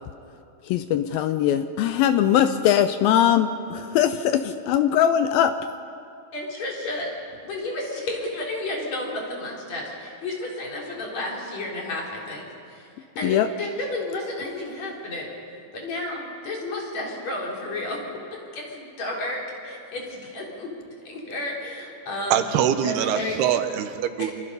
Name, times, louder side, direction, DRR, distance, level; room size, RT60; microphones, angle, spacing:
voice 1, 0.6-5.6 13.2-13.5, left 10 dB, 80° left, 10 dB, 2.4 m, -21 dB
voice 2, 6.3-7.1 7.5-12.4 12.7-12.9 13.2-15.3 15.7-18.0 18.3-20.7 21.0-22.4 22.8-23.4 24.2-24.3, left 2 dB, 45° left, -2 dB, 4.6 m, -32 dB
voice 3, 22.3-24.3, right 10 dB, 85° right, 9 dB, 3.1 m, -23 dB
26.5 x 26.0 x 5.5 m, 2.6 s
omnidirectional pair, 4.5 m